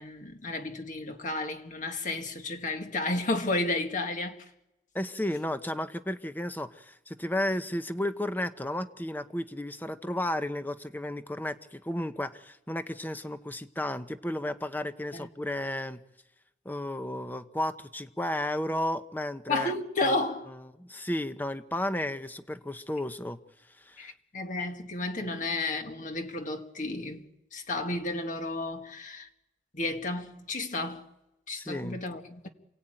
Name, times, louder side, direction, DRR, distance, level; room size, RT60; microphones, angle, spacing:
voice 1, 0.0-4.4 15.1-15.3 19.5-20.5 24.0-27.2 27.5-29.3 29.7-31.1 31.5-32.5, left 2 dB, 45° left, 1.9 m, -32 dB
voice 2, 4.9-16.0 16.6-19.7 20.0-20.2 20.8-23.4 23.8-24.1 31.5-32.0, left 1 dB, 10° left, 1.0 m, -33 dB
28.0 x 17.5 x 9.0 m
head